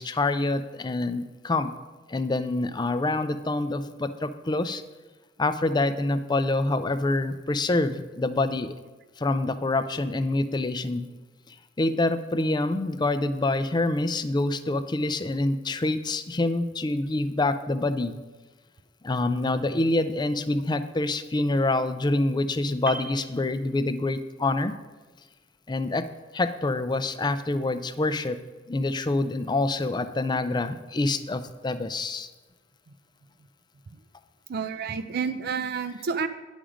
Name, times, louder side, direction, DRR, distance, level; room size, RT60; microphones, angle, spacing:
voice 1, 0.0-1.7 2.1-4.8 5.4-8.7 9.2-11.1 11.5-18.2 19.0-24.7 25.7-26.0 26.3-28.4 28.7-32.3, left 2 dB, 25° left, 12 dB, 0.4 m, -26 dB
Piano, 22.9-24.3 24.6-24.8, right 3 dB, 10° right, 0.8 m, -40 dB
voice 2, 34.5-36.3, right 5 dB, 60° right, 9 dB, 0.4 m, -29 dB
10.0 x 6.2 x 5.0 m, 1.2 s
head